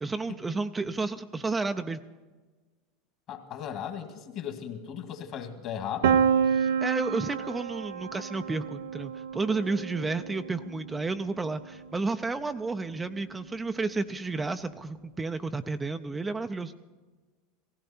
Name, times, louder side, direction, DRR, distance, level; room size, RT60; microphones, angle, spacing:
voice 1, 0.0-2.0 6.5-16.7, right 3 dB, 15° right, 9 dB, 0.5 m, -31 dB
voice 2, 3.3-6.3, left 8 dB, 50° left, 6 dB, 2.0 m, -37 dB
Piano, 6.0-11.8, right 7 dB, 80° right, 0.6 m, -29 dB
17.0 x 16.0 x 4.3 m, 1.3 s
hypercardioid pair, 100°, 0 cm